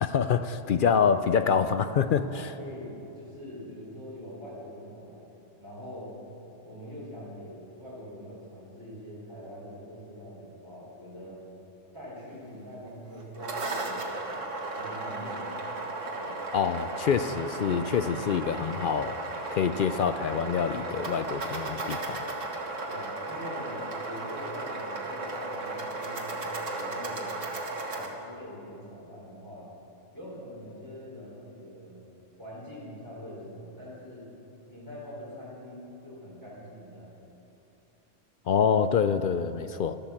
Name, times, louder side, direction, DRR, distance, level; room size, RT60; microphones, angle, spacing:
voice 1, 0.0-2.5 16.5-19.2 19.5-22.2 38.5-40.0, left 7 dB, 60° left, 11 dB, 0.5 m, -26 dB
voice 2, 2.2-5.3 5.6-6.2 6.6-11.4 11.9-14.1 14.7-15.5 16.1-16.4 22.9-27.3 27.9-29.7 30.1-32.0 32.4-34.3 34.7-37.1, equal, 15° left, -8 dB, 4.3 m, -43 dB
sound 1, 13.2-28.1, right 2 dB, 80° right, 1.9 m, -35 dB
13.0 x 12.0 x 7.2 m, 2.9 s
omnidirectional pair, 1.3 m